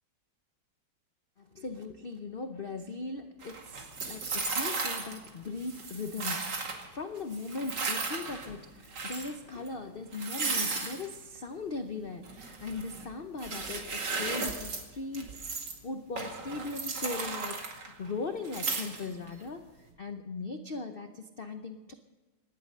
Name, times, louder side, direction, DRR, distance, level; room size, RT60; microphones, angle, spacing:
voice 1, 1.4-21.9, left 3 dB, 85° left, 7 dB, 0.4 m, -39 dB
sound 1, 3.4-5.3 5.6-6.9 7.3-8.5 8.8-9.3 9.7-9.8 10.1-11.1 12.2-13.1 13.4-14.8 15.1-15.8 16.2-18.1 18.4-19.3, right 4 dB, 55° right, 2.7 m, -35 dB
17.5 x 11.5 x 6.6 m, 1.2 s
omnidirectional pair, 2.2 m